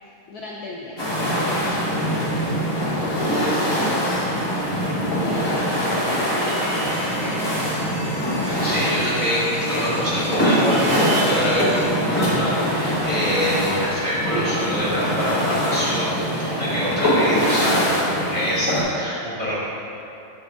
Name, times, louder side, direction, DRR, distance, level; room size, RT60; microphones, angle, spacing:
voice 1, 0.3-7.8, left 3 dB, 90° left, -3 dB, 0.8 m, -36 dB
sound 1, 1.0-18.8, equal, 25° left, 0.6 m, -23 dB
sound 2, 3.5-8.9 9.2-13.1 13.4-14.5, right 5 dB, 80° right, 1.4 m, -38 dB
sound 3, 6.8-11.8, left 1 dB, 70° left, 1.7 m, -39 dB
voice 2, 8.6-19.6, equal, 25° right, -10 dB, 0.8 m, -25 dB
6.7 x 5.1 x 3.4 m, 2.9 s
omnidirectional pair, 2.2 m